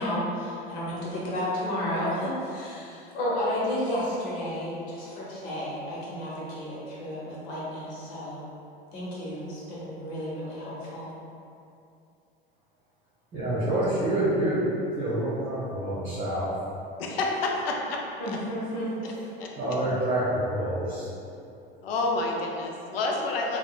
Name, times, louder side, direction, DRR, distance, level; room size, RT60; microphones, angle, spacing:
voice 1, 0.0-8.4 8.9-11.1 18.2-18.9, left 1 dB, 65° left, -7 dB, 1.0 m, -32 dB
voice 2, 13.3-14.7 14.9-16.5 19.6-21.1, right 1 dB, 25° right, -10 dB, 1.1 m, -27 dB
voice 3, 17.0-18.4 19.0-19.1 19.4-19.5 21.8-23.6, left 2 dB, 80° left, 0 dB, 0.5 m, -29 dB
3.5 x 2.3 x 2.3 m, 2.6 s
hypercardioid pair, 75°, 29 cm